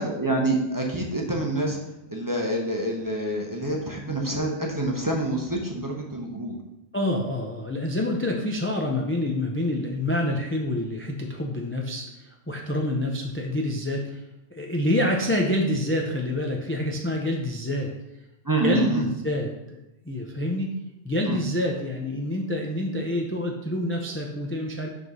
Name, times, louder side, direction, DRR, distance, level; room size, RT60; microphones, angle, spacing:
voice 1, 0.0-1.8 2.1-6.6 18.4-19.0 21.3-21.4, right 1 dB, 20° right, 0 dB, 0.8 m, -26 dB
voice 2, 6.9-14.2 14.5-17.9 18.6-19.8 20.0-20.7 21.0-24.9, left 1 dB, 15° left, 0 dB, 0.5 m, -27 dB
6.0 x 3.7 x 5.4 m, 0.91 s
omnidirectional pair, 1.1 m